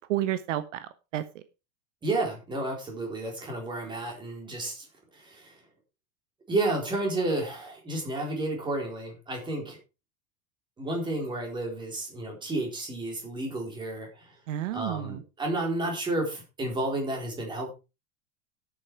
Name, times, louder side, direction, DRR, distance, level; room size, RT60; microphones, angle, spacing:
voice 1, 0.1-1.2 14.5-15.2, right 13 dB, 65° right, 12 dB, 1.2 m, -30 dB
voice 2, 2.0-4.9 5.1-5.6 6.5-9.8 10.8-14.3 14.7-17.7, right 2 dB, 10° right, 1 dB, 4.0 m, -31 dB
11.5 x 8.8 x 4.8 m, 0.29 s
supercardioid pair, 175°, 40 cm